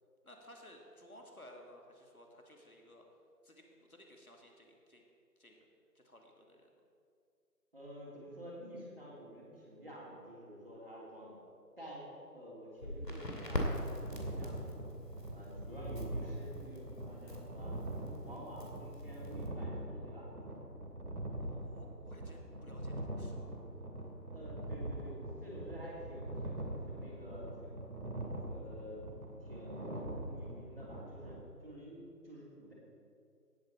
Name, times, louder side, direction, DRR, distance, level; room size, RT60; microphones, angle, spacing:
voice 1, 0.2-3.1 3.4-5.0 5.4-5.6 5.9-6.7 21.4-23.5, left 1 dB, 60° left, 1 dB, 2.1 m, -57 dB
voice 2, 7.7-11.4 11.8-14.9 15.3-17.8 18.2-20.3 24.3-27.9 28.4-29.0 29.4-32.7, equal, 35° right, -5 dB, 3.1 m, -50 dB
Crackle, 12.8-19.5, equal, 75° left, 2.7 m, -43 dB
sound 1, 13.3-31.4, right 1 dB, 65° right, 2.4 m, -43 dB
18.0 x 8.4 x 4.4 m, 2.5 s
figure-of-eight pair, 175°, 49 cm